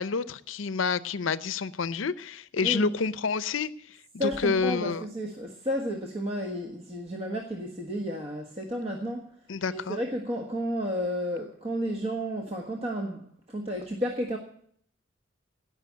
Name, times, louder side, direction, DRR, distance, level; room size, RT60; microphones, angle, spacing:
voice 1, 0.0-3.7 4.1-5.0 9.5-10.0, left 5 dB, 80° left, 16 dB, 0.6 m, -28 dB
voice 2, 2.6-2.9 4.2-9.3 9.7-14.4, equal, 30° right, 1 dB, 1.5 m, -32 dB
17.5 x 6.0 x 9.3 m, 0.63 s
head